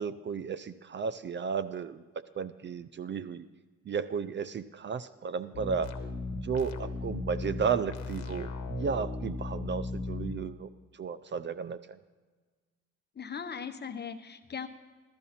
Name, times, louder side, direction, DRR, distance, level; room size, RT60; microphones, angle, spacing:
voice 1, 0.0-2.0 2.4-3.5 3.9-5.9 6.3-10.7 11.0-12.0, right 6 dB, 40° right, 15 dB, 0.5 m, -33 dB
sound 1, 5.5-10.3, left 3 dB, 65° left, 1.2 m, -36 dB
voice 2, 13.1-14.7, left 6 dB, 35° left, 8 dB, 1.0 m, -39 dB
15.5 x 12.5 x 4.2 m, 1.4 s
cardioid pair, 90°, 30 cm